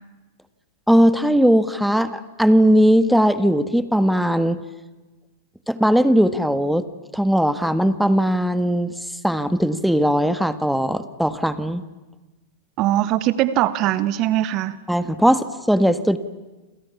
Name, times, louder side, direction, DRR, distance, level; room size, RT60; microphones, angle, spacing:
voice 1, 0.9-4.6 5.7-6.9 7.1-8.9 9.2-11.8 14.9-16.2, equal, ahead, 12 dB, 1.6 m, -18 dB
voice 2, 12.8-14.8, right 13 dB, 45° right, 15 dB, 1.6 m, -21 dB
29.0 x 27.5 x 7.2 m, 1.2 s
hypercardioid pair, 105°, 0 cm